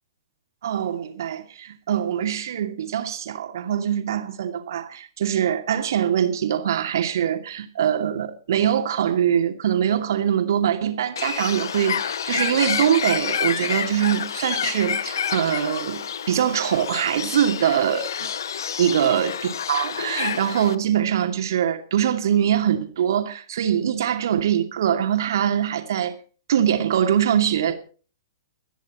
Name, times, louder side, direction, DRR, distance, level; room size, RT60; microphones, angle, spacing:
voice 1, 0.6-18.3 18.8-19.3 19.7-26.1 26.5-27.7, right 9 dB, 55° right, 2.4 m, -23 dB
Bird, 11.2-20.8, left 8 dB, 60° left, 0.9 m, -28 dB
24.0 x 10.0 x 4.4 m
figure-of-eight pair, 110°, 2 cm